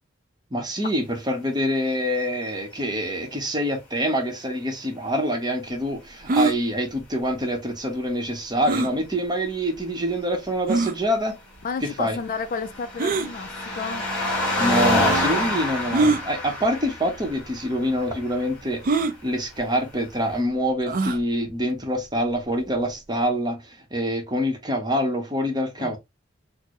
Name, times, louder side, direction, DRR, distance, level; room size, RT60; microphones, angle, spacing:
voice 1, 0.5-11.3 12.0-12.2 14.6-18.8 19.2-23.6 23.9-26.0, equal, 20° right, 0.8 m, -25 dB
sound 1, 6.3-6.6 8.7-8.9 9.7-9.8 10.7-11.0 13.0-13.3 14.4-14.5 15.9-16.2 17.1-17.3 17.6-17.7 18.8-19.2 20.9-21.2, right 3 dB, 45° right, 0.4 m, -22 dB
voice 2, 11.6-13.5 13.8-14.0 25.8-26.0, left 5 dB, 45° left, 0.3 m, -31 dB
sound 2, 11.9-18.6 19.6-19.7, left 1 dB, 5° left, 1.5 m, -27 dB
4.3 x 2.0 x 2.9 m
head